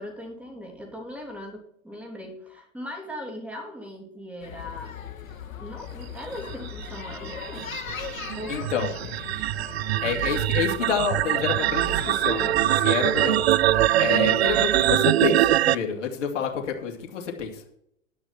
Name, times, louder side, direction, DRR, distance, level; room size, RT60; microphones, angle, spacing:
voice 1, 0.0-5.0 5.6-7.7 8.3-8.9, left 1 dB, 5° right, 2 dB, 3.2 m, -39 dB
sound 1, 4.4-14.9, left 7 dB, 85° left, 2.2 m, -39 dB
sound 2, 6.5-15.8, right 14 dB, 55° right, 0.5 m, -23 dB
voice 2, 8.5-8.9 10.0-13.4 14.0-17.6, left 7 dB, 65° left, 2 dB, 2.8 m, -28 dB
11.5 x 6.2 x 6.0 m, 0.71 s
hypercardioid pair, 120°, 39 cm